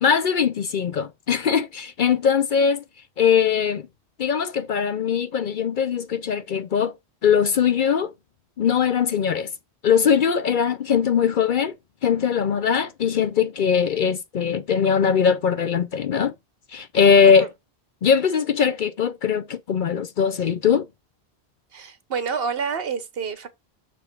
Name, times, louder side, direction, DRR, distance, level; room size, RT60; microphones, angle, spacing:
voice 1, 0.0-2.8 3.2-3.9 4.2-6.9 7.2-8.1 8.6-9.5 9.8-11.7 12.0-16.3 16.7-17.5 18.0-20.9, left 7 dB, 55° left, 0.6 m, -21 dB
voice 2, 21.7-23.5, right 6 dB, 65° right, 1.2 m, -28 dB
6.9 x 3.5 x 5.9 m
omnidirectional pair, 1.1 m